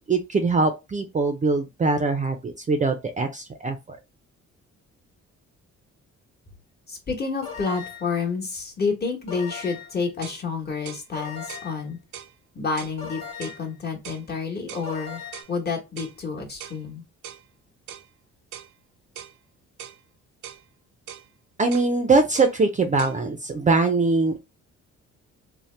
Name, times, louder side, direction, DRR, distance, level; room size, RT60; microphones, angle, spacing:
voice 1, 0.1-4.0 21.6-24.4, right 3 dB, 25° right, 0.4 m, -22 dB
voice 2, 6.9-12.0 12.5-15.2 15.5-17.0, left 4 dB, 35° left, 1.1 m, -29 dB
sound 1, 7.4-8.2 9.3-10.0 11.1-11.9 13.0-13.7 14.8-15.4, left 6 dB, 60° left, 1.3 m, -38 dB
sound 2, 9.8-9.9 10.2-10.4 10.9-11.1 11.5-11.7 12.1-12.3 12.8-13.0 13.4-13.6 14.0-14.3 14.7-14.9 15.3-15.5 16.0-16.2 16.6-16.8 17.2-17.4 17.9-18.1 18.5-18.7 19.2-19.4 19.8-20.0 20.4-20.6 21.1-21.3 21.7-21.9 22.3-22.6 23.0-23.2, right 10 dB, 75° right, 0.5 m, -41 dB
2.7 x 2.1 x 3.1 m
cardioid pair, 90°, 30 cm